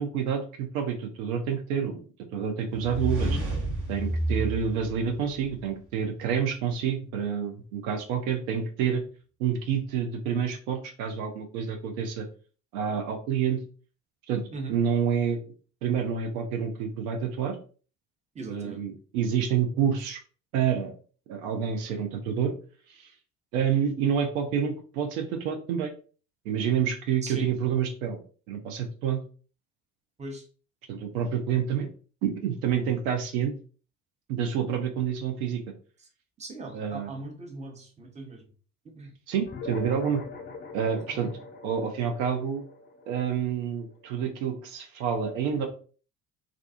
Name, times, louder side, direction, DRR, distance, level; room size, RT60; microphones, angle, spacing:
voice 1, 0.0-3.4 3.9-9.0 9.4-12.3 12.7-13.6 14.3-14.4 14.7-15.4 15.8-17.6 18.5-20.2 20.5-20.9 21.3-22.5 22.9-23.1 23.5-25.9 26.5-28.2 28.5-29.2 30.9-31.9 32.2-33.5 34.3-35.6 36.7-37.1 39.3-40.2 40.7-41.3 41.6-42.6 43.1-45.7, right 7 dB, 75° right, 4 dB, 0.6 m, -28 dB
sound 1, 2.7-5.7, right 2 dB, 45° right, 1.0 m, -30 dB
voice 2, 18.3-18.8 27.2-27.5 30.2-30.4 36.4-38.4 38.8-39.1 41.1-41.3, right 3 dB, 15° right, 3 dB, 0.7 m, -39 dB
sound 2, 39.5-44.3, left 3 dB, 25° left, 0.5 m, -42 dB
2.4 x 2.3 x 2.5 m, 0.40 s
hypercardioid pair, 55°, 42 cm